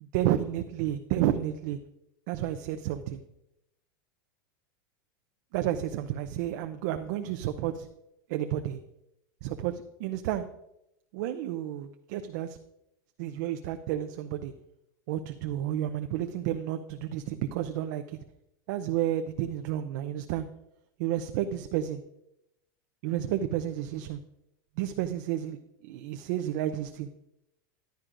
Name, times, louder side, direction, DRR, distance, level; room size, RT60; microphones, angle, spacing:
voice 1, 0.1-1.8 2.3-3.2 5.5-7.9 8.3-8.8 9.4-10.5 11.1-12.6 13.2-14.5 15.1-18.2 18.7-20.5 21.0-22.0 23.0-24.2 24.8-25.6 25.8-27.1, right 12 dB, 55° right, 7 dB, 0.6 m, -31 dB
14.5 x 10.5 x 2.5 m, 0.85 s
supercardioid pair, 150°, 11 cm